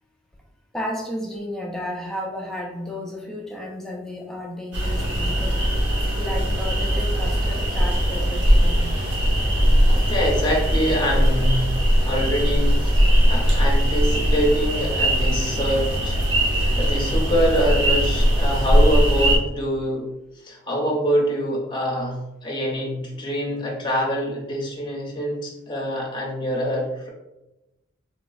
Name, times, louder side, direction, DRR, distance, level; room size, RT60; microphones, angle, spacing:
voice 1, 0.7-5.8 6.2-8.9, left 1 dB, ahead, -1 dB, 0.3 m, -33 dB
sound 1, 4.7-19.4, equal, 60° right, 0.9 m, -20 dB
voice 2, 9.9-11.7 12.1-16.2 16.5-20.0 20.3-27.1, equal, 25° left, -2 dB, 0.7 m, -25 dB
3.3 x 2.9 x 2.4 m, 0.95 s
head